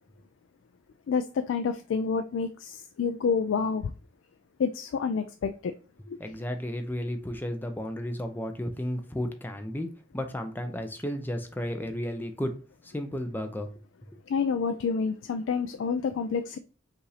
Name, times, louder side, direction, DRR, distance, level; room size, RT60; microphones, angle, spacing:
voice 1, 1.1-3.9 4.6-5.7 6.1-6.2 14.3-16.6, left 5 dB, 75° left, 9 dB, 0.3 m, -28 dB
voice 2, 6.2-12.5 12.8-13.7, equal, 10° left, 6 dB, 0.6 m, -33 dB
5.2 x 2.5 x 3.3 m, 0.36 s
head